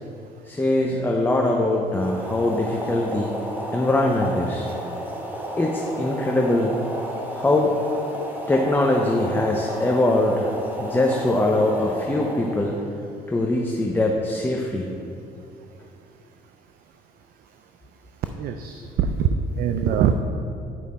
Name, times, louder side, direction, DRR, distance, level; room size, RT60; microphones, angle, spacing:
voice 1, 0.5-3.3 3.7-4.7 5.6-6.8 7.3-7.7 8.5-10.5 10.8-12.8 13.3-14.9, left 1 dB, 10° left, 0 dB, 0.6 m, -22 dB
Boiling, 1.9-12.9, equal, 10° right, 1.1 m, -32 dB
voice 2, 18.4-20.1, right 7 dB, 60° right, 7 dB, 0.4 m, -23 dB
9.3 x 4.9 x 4.2 m, 2.5 s
cardioid pair, 110°, 17 cm